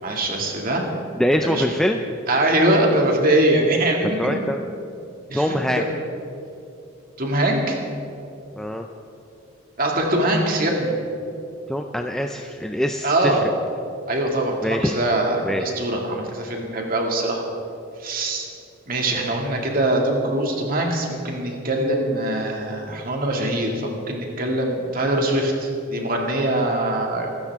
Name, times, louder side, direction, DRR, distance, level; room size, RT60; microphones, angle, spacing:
voice 1, 0.0-0.8 1.4-1.6 2.3-4.4 5.3-5.9 7.2-7.8 9.8-11.0 13.0-13.4 14.1-17.4 18.0-18.4 18.9-27.3, right 1 dB, 45° right, 0 dB, 2.3 m, -22 dB
voice 2, 1.2-2.0 4.2-4.6 5.3-5.9 8.5-8.9 11.7-13.5 14.6-15.0 15.4-15.6, equal, 5° left, 3 dB, 0.5 m, -23 dB
24.5 x 13.0 x 3.6 m, 2.7 s
head